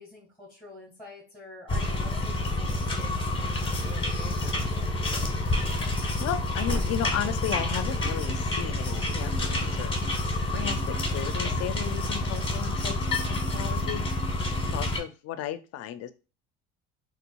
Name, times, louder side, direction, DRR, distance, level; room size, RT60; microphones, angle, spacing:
voice 1, 0.0-5.0, left 1 dB, ahead, -3 dB, 1.6 m, -47 dB
sound 1, 1.7-15.0, left 2 dB, 15° left, 1.1 m, -28 dB
voice 2, 6.0-10.0 10.5-14.0 14.6-16.1, left 10 dB, 50° left, 12 dB, 0.5 m, -35 dB
3.8 x 2.4 x 2.2 m, 0.32 s
hypercardioid pair, 75°, 32 cm